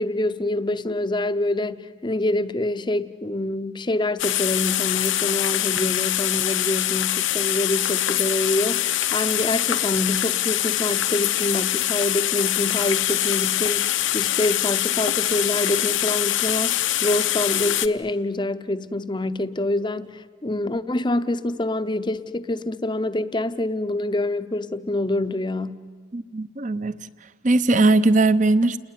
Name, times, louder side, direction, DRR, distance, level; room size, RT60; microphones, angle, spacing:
voice 1, 0.0-25.8, left 2 dB, 20° left, 0.7 m, -26 dB
sound 1, 4.2-17.9, left 13 dB, 70° left, 0.8 m, -24 dB
voice 2, 26.1-27.0 27.4-28.8, right 2 dB, 40° right, 0.8 m, -19 dB
29.5 x 20.0 x 9.6 m
head